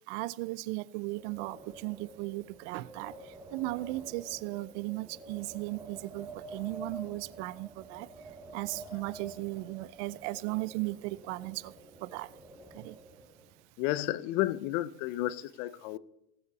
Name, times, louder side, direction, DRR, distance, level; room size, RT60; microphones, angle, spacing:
voice 1, 0.1-3.1 3.5-8.1 8.5-11.7 12.0-12.3 12.7-12.9, right 20 dB, 50° right, 0.5 m, -36 dB
Wind, 1.0-13.6, right 2 dB, 5° right, 0.9 m, -49 dB
voice 2, 13.8-16.0, left 15 dB, 55° left, 0.7 m, -32 dB
20.0 x 6.9 x 4.1 m
supercardioid pair, 140°, 46 cm